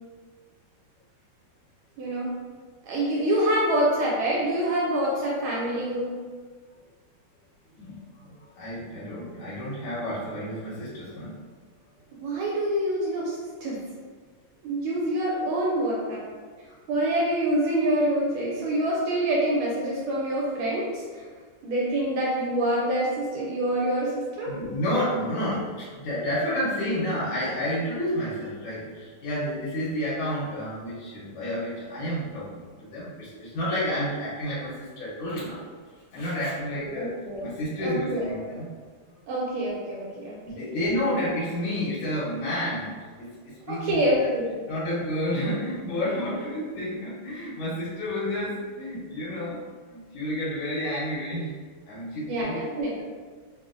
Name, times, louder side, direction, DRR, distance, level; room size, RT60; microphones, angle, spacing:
voice 1, 2.0-2.3 2.8-6.2 12.2-13.8 14.6-16.2 16.9-21.2 21.6-24.5 36.8-37.5 37.8-38.3 39.3-40.7 43.7-44.5 52.3-53.0, right 1 dB, 80° right, -4 dB, 1.4 m, -26 dB
voice 2, 7.8-11.4 24.5-35.6 36.1-37.1 37.4-38.7 40.4-44.3 44.7-49.6 49.9-51.5 51.9-52.6, equal, 80° left, -8 dB, 1.6 m, -30 dB
3.4 x 2.4 x 2.4 m, 1.5 s
omnidirectional pair, 2.4 m